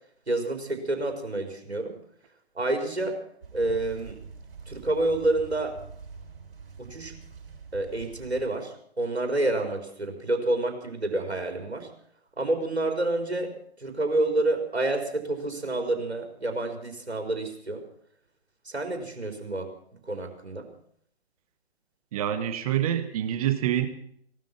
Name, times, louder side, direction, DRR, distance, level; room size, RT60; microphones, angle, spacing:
voice 1, 0.3-2.0 2.5-3.2 3.5-4.2 4.7-5.8 6.8-7.1 7.7-11.9 12.4-13.5 13.8-17.8 18.6-19.7 20.1-20.7, right 2 dB, 85° right, 5 dB, 4.4 m, -28 dB
sound 1, 3.4-8.5, right 5 dB, 55° right, 7.0 m, -45 dB
voice 2, 22.1-23.9, right 11 dB, 35° right, 10 dB, 1.8 m, -26 dB
18.0 x 13.0 x 6.0 m, 0.65 s
figure-of-eight pair, 130°, 32 cm